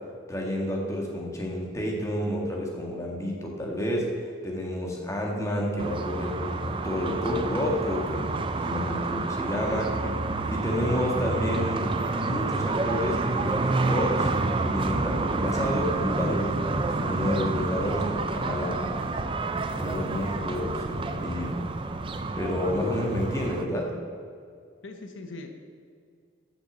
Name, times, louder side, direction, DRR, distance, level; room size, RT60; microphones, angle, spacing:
voice 1, 0.3-9.9 10.5-19.0 19.8-21.6 22.4-23.9, left 1 dB, 15° left, -1 dB, 1.5 m, -30 dB
sound 1, 5.8-23.6, right 3 dB, 25° right, 0.4 m, -29 dB
voice 2, 9.7-10.2 24.8-25.5, left 2 dB, 80° left, 5 dB, 0.8 m, -41 dB
sound 2, 14.3-23.5, right 1 dB, 45° right, 0.9 m, -44 dB
7.7 x 6.6 x 7.2 m, 2.1 s
head